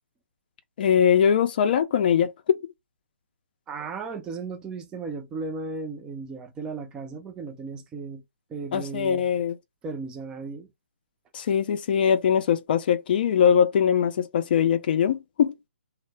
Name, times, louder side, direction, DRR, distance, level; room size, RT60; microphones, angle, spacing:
voice 1, 0.8-2.3 8.7-9.5 11.3-15.6, left 8 dB, 45° left, 0.4 m, -21 dB
voice 2, 3.7-8.2 8.5-9.3 9.8-10.7, right 4 dB, 10° right, 0.4 m, -35 dB
2.0 x 2.0 x 3.3 m
hypercardioid pair, 145°, 7 cm